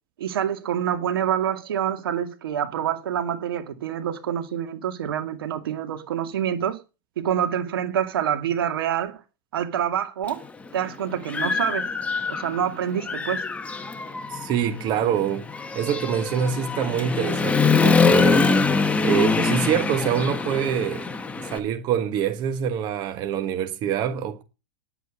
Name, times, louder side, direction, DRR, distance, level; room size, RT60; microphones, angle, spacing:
voice 1, 0.2-6.8 7.2-9.2 9.5-10.4 10.7-11.9 12.3-13.4, right 9 dB, 85° right, 2.3 m, -26 dB
Human voice / Motorcycle, 10.3-10.4 10.9-12.6 13.0-21.6, left 4 dB, 10° left, 1.2 m, -23 dB
voice 2, 14.3-15.5 15.7-18.4 19.0-24.4, right 8 dB, 40° right, 1.4 m, -25 dB
10.5 x 8.2 x 6.5 m
supercardioid pair, 135°, 12 cm